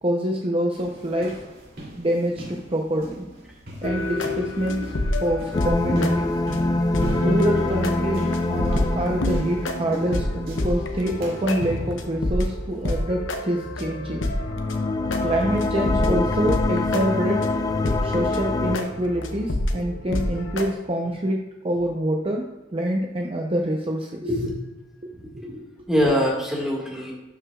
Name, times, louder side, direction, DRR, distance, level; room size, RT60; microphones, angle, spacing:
voice 1, 0.0-1.4 2.0-3.3 3.8-4.9 5.2-6.3 7.2-14.3 15.2-17.5 18.0-24.5 25.0-25.4 26.0-26.1, right 1 dB, 30° right, 1 dB, 0.7 m, -26 dB
sound 1, 0.8-12.0, right 1 dB, 50° right, 2.5 m, -38 dB
sound 2, 3.8-20.7, left 1 dB, 80° left, 0.8 m, -28 dB
sound 3, 5.5-11.5 14.4-18.8, left 2 dB, 20° left, 0.3 m, -25 dB
voice 2, 24.2-24.6 25.4-25.6 25.9-27.1, equal, 5° right, -3 dB, 1.8 m, -24 dB
12.0 x 5.9 x 2.4 m, 1.1 s
head